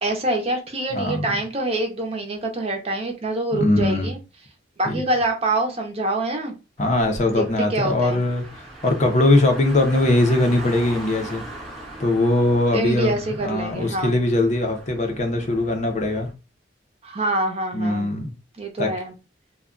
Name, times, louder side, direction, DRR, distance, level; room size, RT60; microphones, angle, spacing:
voice 1, 0.0-4.2 4.8-6.5 7.4-8.2 12.7-14.2 17.0-18.1 18.6-19.1, right 2 dB, 35° right, 0.6 m, -25 dB
voice 2, 0.9-1.3 3.5-4.1 4.9-5.0 6.8-11.4 12.0-13.1 13.4-16.3 17.7-18.3 18.8-18.9, left 2 dB, 40° left, 0.6 m, -21 dB
Car, 6.8-16.3, right 1 dB, ahead, 0.8 m, -39 dB
2.3 x 2.2 x 3.6 m
head